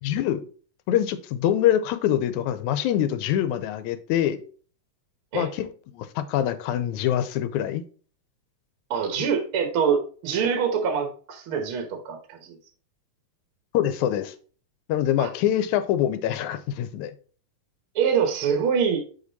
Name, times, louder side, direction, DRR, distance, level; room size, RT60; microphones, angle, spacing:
voice 1, 0.0-0.4 0.9-4.4 5.3-7.8 9.2-9.3 13.7-14.3 14.9-17.1, left 11 dB, 85° left, 12 dB, 2.1 m, -24 dB
voice 2, 8.9-12.6 15.2-15.3 17.9-19.0, right 6 dB, 55° right, 4 dB, 1.7 m, -25 dB
6.7 x 5.2 x 4.0 m, 0.41 s
omnidirectional pair, 3.4 m